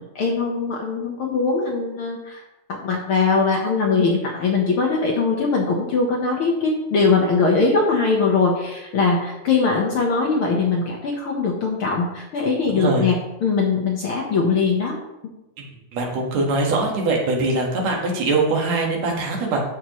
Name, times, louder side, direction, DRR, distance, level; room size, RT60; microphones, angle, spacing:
voice 1, 0.1-2.4 2.7-14.9, left 4 dB, 60° left, -1 dB, 1.5 m, -21 dB
voice 2, 12.7-13.1 15.6-15.7 15.9-19.6, right 3 dB, 65° right, 0 dB, 2.7 m, -22 dB
11.0 x 7.2 x 3.1 m, 0.94 s
omnidirectional pair, 3.5 m